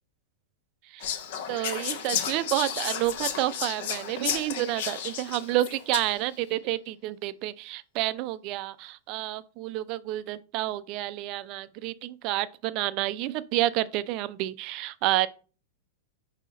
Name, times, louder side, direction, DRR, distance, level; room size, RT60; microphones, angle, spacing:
Whispering, 1.0-6.3, left 8 dB, 60° left, 0.6 m, -33 dB
voice 1, 1.5-15.3, right 15 dB, 45° right, 0.3 m, -29 dB
4.8 x 2.7 x 3.8 m
figure-of-eight pair, 100°, 0 cm